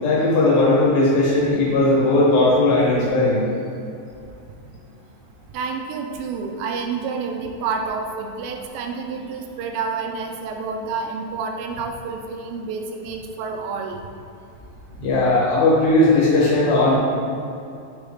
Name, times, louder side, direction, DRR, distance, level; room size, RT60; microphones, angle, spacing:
voice 1, 0.0-3.4 15.0-17.0, left 2 dB, 70° left, -6 dB, 2.7 m, -17 dB
voice 2, 5.5-14.0, right 5 dB, 90° right, 3 dB, 2.8 m, -29 dB
7.1 x 4.4 x 3.4 m, 2.5 s
omnidirectional pair, 4.9 m